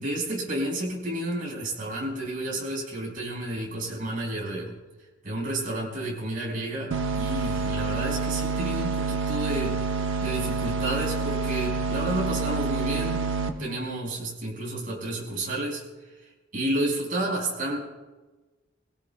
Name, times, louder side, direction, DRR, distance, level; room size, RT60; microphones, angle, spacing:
voice 1, 0.0-4.8 5.2-9.8 10.2-13.3 13.6-15.8 16.5-17.8, right 1 dB, 45° right, -2 dB, 5.2 m, -31 dB
sound 1, 6.9-13.5, right 4 dB, 65° right, 1.0 m, -28 dB
23.0 x 17.0 x 2.3 m, 1.2 s
head